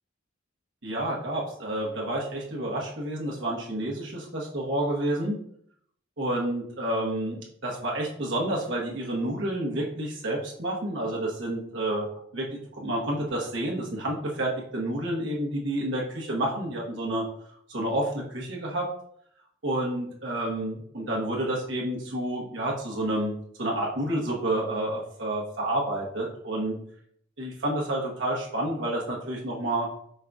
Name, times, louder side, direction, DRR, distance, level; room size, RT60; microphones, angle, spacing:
voice 1, 0.8-5.4 6.2-17.3 17.7-18.9 19.6-26.8 27.4-29.9, right 1 dB, 65° right, -2 dB, 1.1 m, -29 dB
5.3 x 3.8 x 2.4 m, 0.67 s
head